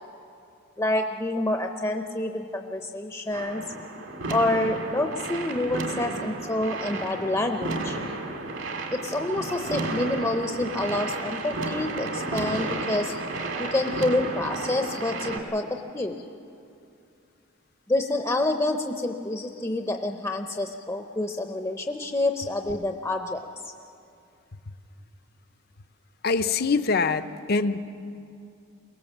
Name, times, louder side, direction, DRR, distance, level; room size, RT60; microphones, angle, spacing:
voice 1, 0.8-3.6 4.3-8.0 8.9-13.1 13.6-16.2 17.9-23.7, left 1 dB, 15° left, 5 dB, 0.7 m, -28 dB
sound 1, 3.3-15.4, right 2 dB, 65° right, 2.0 m, -32 dB
voice 2, 26.2-27.8, left 4 dB, 50° left, 11 dB, 0.7 m, -24 dB
23.0 x 18.5 x 7.4 m, 2.5 s
head